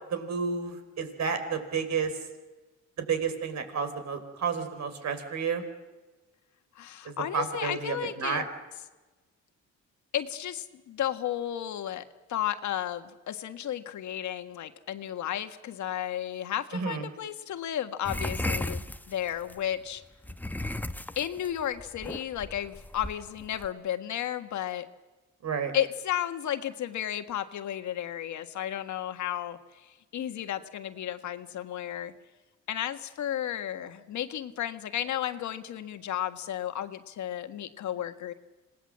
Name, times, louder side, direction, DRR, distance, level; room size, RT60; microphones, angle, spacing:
voice 1, 0.1-2.1 3.0-5.6 7.0-8.4 16.7-17.1 25.4-25.7, right 6 dB, 65° right, 8 dB, 4.4 m, -31 dB
voice 2, 6.7-8.4 10.1-18.8 19.1-20.0 21.1-24.9 25.7-32.1 32.7-38.3, left 11 dB, 70° left, 9 dB, 1.7 m, -33 dB
sound 1, 18.0-19.6 20.2-23.7, left 1 dB, 5° left, 1.0 m, -34 dB
27.0 x 19.0 x 7.5 m, 1.2 s
cardioid pair, 90°, 30 cm